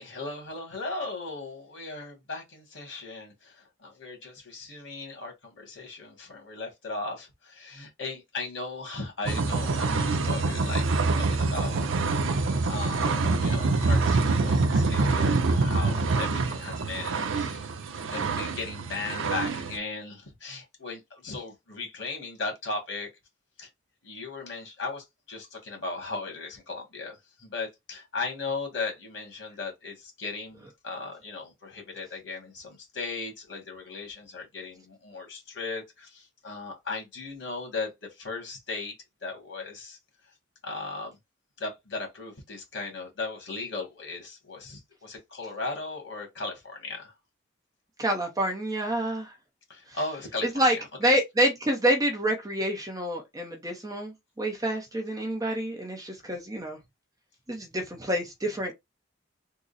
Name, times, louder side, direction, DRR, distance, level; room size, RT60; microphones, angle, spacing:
voice 1, 0.0-10.8 11.2-11.9 12.4-17.7 18.1-23.1 23.6-23.7 24.0-38.9 39.2-40.0 40.6-41.2 41.6-47.1 49.7-50.7 51.0-51.1, left 3 dB, 65° left, 1.6 m, -37 dB
sound 1, 9.3-19.8, right 3 dB, 75° right, 0.6 m, -26 dB
voice 2, 48.0-49.3 49.9-50.0 50.5-56.8 57.5-58.7, right 1 dB, 20° right, 0.6 m, -27 dB
3.7 x 2.0 x 4.0 m
head